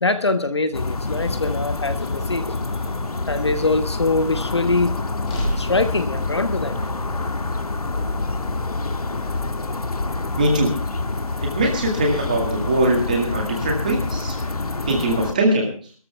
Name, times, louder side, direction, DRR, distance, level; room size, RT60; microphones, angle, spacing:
voice 1, 0.0-2.8 3.3-5.0 5.6-6.8, left 3 dB, 50° left, 10 dB, 1.3 m, -23 dB
sound 1, 0.7-15.3, left 3 dB, 85° left, 1.9 m, -27 dB
sound 2, 5.2-9.5, equal, 10° left, 2.2 m, -33 dB
voice 2, 10.4-10.7 11.4-14.4 14.9-15.7, right 1 dB, 15° right, 2 dB, 1.9 m, -21 dB
21.5 x 13.5 x 3.4 m, 0.42 s
figure-of-eight pair, 180°, 19 cm